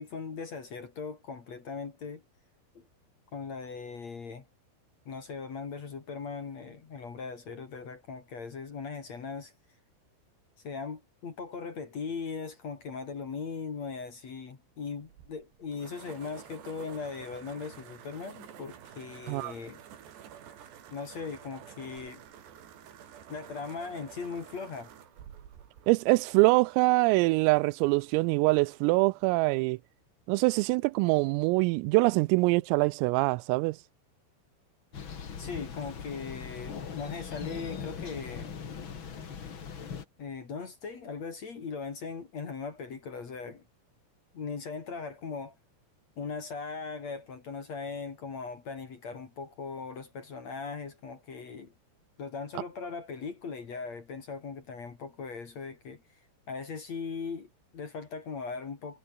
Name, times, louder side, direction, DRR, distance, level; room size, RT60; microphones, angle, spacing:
voice 1, 0.0-2.2 2.7-2.8 3.3-4.5 5.0-9.5 10.6-19.8 20.9-22.2 23.3-24.9 35.4-38.5 40.2-43.6 44.3-45.5 46.2-51.7 52.2-56.0 56.5-59.0, left 5 dB, 40° left, 3.1 m, -39 dB
sound 1, 15.0-26.8, right 9 dB, 60° right, 4.5 m, -50 dB
voice 2, 25.9-29.8 30.3-33.8, right 24 dB, 85° right, 3.2 m, -24 dB
Thunder, 34.9-40.0, left 6 dB, 85° left, 1.1 m, -40 dB
omnidirectional pair, 6.0 m